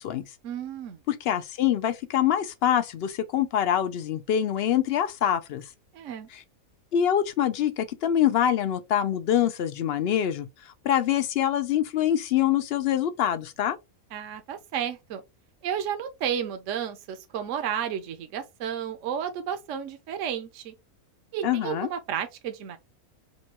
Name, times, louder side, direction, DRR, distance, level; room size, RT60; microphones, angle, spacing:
voice 1, 0.4-1.0 5.9-6.3 14.1-15.2 15.6-20.7 21.3-22.8, right 9 dB, 65° right, 1.0 m, -32 dB
voice 2, 1.1-5.6 6.9-10.5 10.8-13.8 21.4-21.9, left 10 dB, 65° left, 0.6 m, -25 dB
5.3 x 2.3 x 2.9 m
omnidirectional pair, 1.5 m